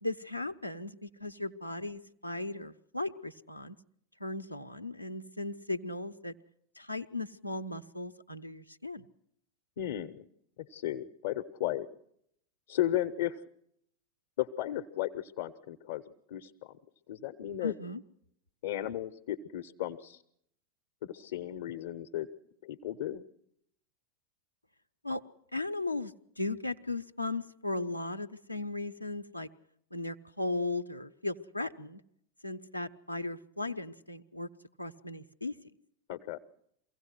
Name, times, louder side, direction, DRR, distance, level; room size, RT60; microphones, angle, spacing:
voice 1, 0.0-3.8 4.2-6.4 6.8-9.1 17.6-18.0 25.0-25.2 25.5-29.5 29.9-32.0 32.4-34.5 34.8-35.5, left 2 dB, 85° left, 9 dB, 0.7 m, -37 dB
voice 2, 9.8-10.3 10.6-11.9 12.7-13.4 14.4-16.0 16.3-16.8 17.1-17.7 18.6-20.2 21.0-22.3 22.6-23.2 36.1-36.4, left 13 dB, 55° left, 10 dB, 0.8 m, -35 dB
24.0 x 16.5 x 7.8 m, 0.74 s
figure-of-eight pair, 90°, 0 cm